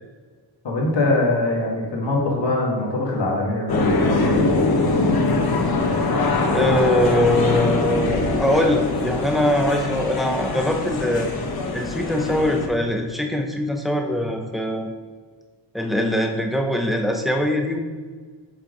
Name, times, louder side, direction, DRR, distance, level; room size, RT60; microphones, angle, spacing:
voice 1, 0.6-4.5, left 2 dB, 75° left, -3 dB, 2.0 m, -22 dB
sound 1, 3.7-12.7, left 3 dB, 55° left, 1.0 m, -22 dB
voice 2, 6.5-11.3 11.7-14.9 15.7-17.8, left 1 dB, ahead, 2 dB, 0.6 m, -22 dB
7.4 x 5.6 x 3.8 m, 1.5 s
wide cardioid pair, 175°, 43 cm